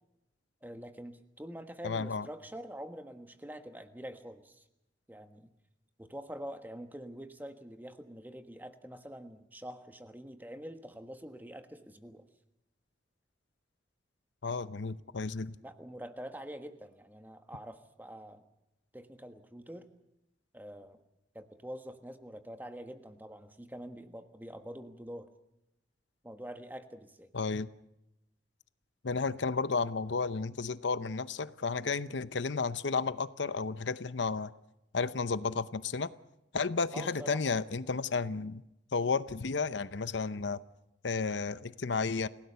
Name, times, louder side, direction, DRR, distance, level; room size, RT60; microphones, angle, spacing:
voice 1, 0.6-4.6 5.1-5.5 6.0-12.2 15.6-18.4 18.9-19.9 20.5-21.0 21.3-25.3 26.2-27.3 36.9-37.6, equal, 10° right, 8 dB, 1.4 m, -45 dB
voice 2, 1.8-2.3 14.4-15.6 27.3-27.7 29.0-34.5 34.9-36.1 36.5-38.6 38.9-40.6 41.0-42.3, left 4 dB, 75° left, 14 dB, 0.8 m, -32 dB
28.5 x 17.0 x 6.9 m, 0.86 s
head